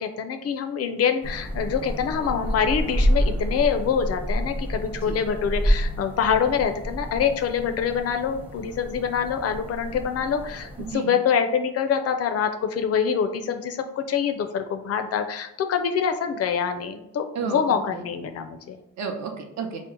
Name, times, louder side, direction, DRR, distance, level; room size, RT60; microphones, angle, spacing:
voice 1, 0.0-18.8, left 7 dB, 55° left, 8 dB, 0.4 m, -25 dB
sound 1, 1.2-10.9, equal, 5° right, 0.6 m, -28 dB
voice 2, 10.8-11.3 17.3-18.1 19.0-19.9, right 5 dB, 65° right, 4 dB, 0.7 m, -33 dB
2.8 x 2.1 x 3.8 m, 0.81 s
cardioid pair, 90°, 30 cm